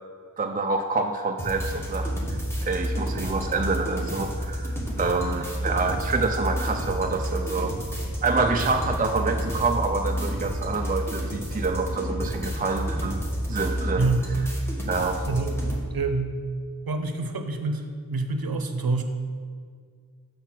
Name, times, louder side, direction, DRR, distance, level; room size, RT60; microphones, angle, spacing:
voice 1, 0.4-7.8 8.2-13.2 13.5-14.1 14.8-15.2, right 3 dB, 25° right, 4 dB, 0.4 m, -27 dB
sound 1, 1.4-15.8, equal, 5° left, 1.4 m, -30 dB
voice 2, 14.0-14.3 15.3-15.6 15.9-16.4 16.9-19.0, right 3 dB, 80° right, 6 dB, 0.7 m, -27 dB
6.9 x 4.4 x 5.9 m, 2.1 s
wide cardioid pair, 50°, 36 cm